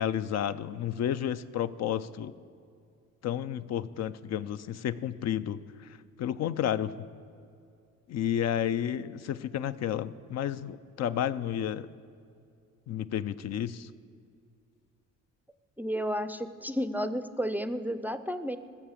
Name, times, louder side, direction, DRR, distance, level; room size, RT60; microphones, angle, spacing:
voice 1, 0.0-2.3 3.2-5.9 6.2-7.0 8.1-11.9 12.9-13.9, left 10 dB, 60° left, 14 dB, 0.5 m, -31 dB
voice 2, 15.8-18.6, equal, 5° right, 12 dB, 0.4 m, -32 dB
14.5 x 6.8 x 7.3 m, 2.4 s
cardioid pair, 90°, 30 cm